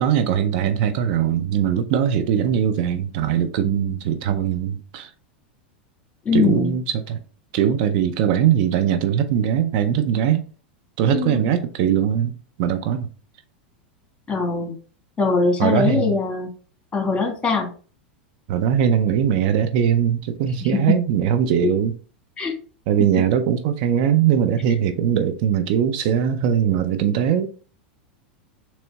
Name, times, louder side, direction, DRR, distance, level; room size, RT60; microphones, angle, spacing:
voice 1, 0.0-5.1 6.3-7.2 7.5-10.4 11.0-12.3 12.6-13.1 15.6-16.1 18.5-21.9 22.9-27.5, right 9 dB, 60° right, 0.5 m, -20 dB
voice 2, 6.2-6.7 11.1-11.5 14.3-14.7 15.2-16.5 16.9-17.7 20.6-20.7 22.4-22.5, left 4 dB, 20° left, 1.7 m, -21 dB
3.9 x 3.0 x 3.4 m
hypercardioid pair, 110°, 6 cm